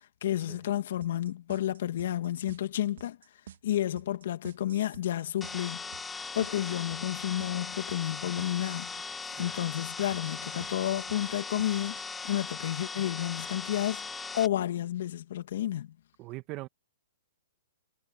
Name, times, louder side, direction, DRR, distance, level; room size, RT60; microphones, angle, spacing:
voice 1, 0.2-3.2 3.6-5.8 6.3-8.9 9.4-12.0 12.2-14.0 14.3-15.9, left 12 dB, 60° left, 2.0 m, -31 dB
sound 1, 1.0-9.0 10.1-12.1, right 10 dB, 65° right, 3.3 m, -50 dB
sound 2, 5.4-14.5, left 4 dB, 10° left, 0.9 m, -39 dB
voice 2, 9.2-9.5 16.2-16.7, right 20 dB, 30° right, 1.7 m, -41 dB
hypercardioid pair, 140°, 0 cm